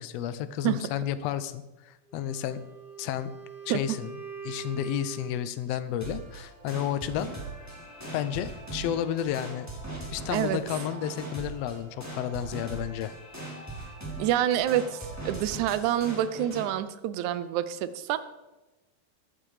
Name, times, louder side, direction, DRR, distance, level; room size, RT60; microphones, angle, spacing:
voice 1, 0.0-2.7 3.0-3.3 3.7-4.1 4.4-7.3 8.1-9.7 10.1-13.1, left 10 dB, 80° left, 12 dB, 1.4 m, -32 dB
Wind instrument woodwind instrument, 2.1-5.6, right 7 dB, 20° left, 1.4 m, -43 dB
sound 1, 6.0-16.7, right 2 dB, 5° right, 3.6 m, -40 dB
voice 2, 14.2-18.2, right 11 dB, 75° right, 13 dB, 2.0 m, -27 dB
15.0 x 10.5 x 4.9 m, 1.1 s
omnidirectional pair, 3.7 m